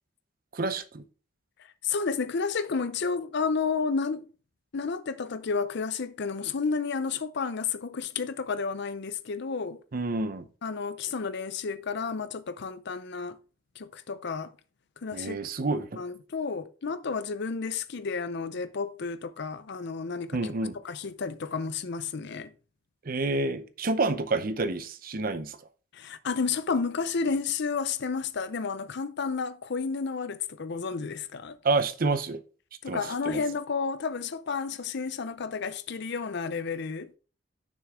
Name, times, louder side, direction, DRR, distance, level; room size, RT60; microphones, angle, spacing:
voice 1, 0.5-1.0 9.9-10.5 15.1-16.0 20.3-20.8 23.1-25.6 31.6-32.4 32.9-33.4, right 3 dB, 45° right, 0.7 m, -29 dB
voice 2, 1.8-4.3 4.7-9.8 10.6-13.4 13.8-14.5 15.0-15.4 15.7-20.5 20.8-22.5 25.9-31.6 32.8-37.1, left 5 dB, 60° left, 0.6 m, -31 dB
6.4 x 6.3 x 3.6 m
head